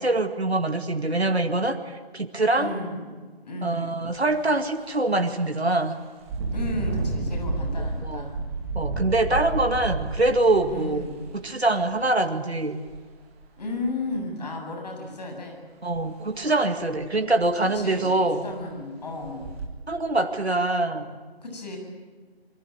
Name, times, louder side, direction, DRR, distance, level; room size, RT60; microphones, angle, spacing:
voice 1, 0.0-2.7 3.6-6.0 8.0-8.3 8.8-11.1 11.3-12.8 15.8-18.4 19.9-21.2, right 2 dB, 80° right, 6 dB, 2.2 m, -24 dB
voice 2, 2.5-3.1 3.4-3.9 6.5-8.4 10.7-11.2 13.6-15.6 17.7-18.1 18.4-19.5 21.4-21.8, left 2 dB, 40° left, 2 dB, 7.7 m, -34 dB
Engine, 4.1-4.4 4.8-5.0 6.2-12.0 12.9-13.0 13.4-14.2 15.9-16.1 16.4-16.5 17.0-17.1 17.4-17.9 18.5-18.6 19.2-19.6, right 3 dB, 10° right, 2.0 m, -31 dB
27.0 x 23.5 x 9.0 m, 1.5 s
figure-of-eight pair, 160°, 32 cm